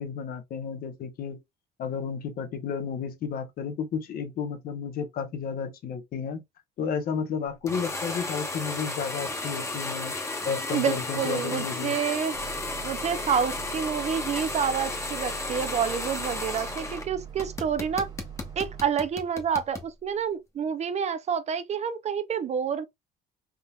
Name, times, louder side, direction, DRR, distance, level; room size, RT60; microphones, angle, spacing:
voice 1, 0.0-1.4 1.8-6.4 6.8-10.1 10.4-12.0, left 6 dB, 60° left, 0.8 m, -32 dB
sound 1, 7.7-17.1 17.4-19.9, left 2 dB, 15° left, 1.0 m, -33 dB
voice 2, 10.7-12.3 12.8-18.1 18.6-22.8, right 7 dB, 40° right, 0.5 m, -28 dB
sound 2, 12.3-18.8, right 8 dB, 25° right, 0.9 m, -42 dB
3.6 x 2.8 x 2.2 m
cardioid pair, 110°, 17 cm